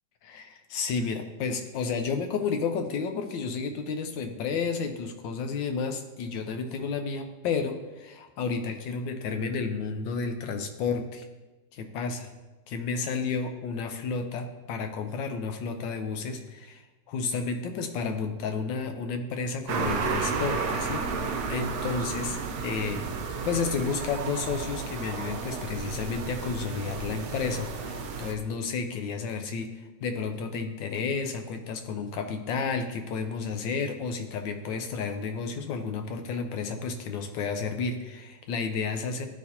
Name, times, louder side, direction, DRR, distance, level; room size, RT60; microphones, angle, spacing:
voice 1, 0.2-11.2 11.7-12.3 12.7-16.8 17.1-21.0 21.5-23.1 23.4-39.3, left 5 dB, 85° left, 6 dB, 1.4 m, -31 dB
sound 1, 19.7-28.3, right 5 dB, 70° right, 1.2 m, -32 dB
11.5 x 4.1 x 2.8 m, 1.1 s
omnidirectional pair, 2.0 m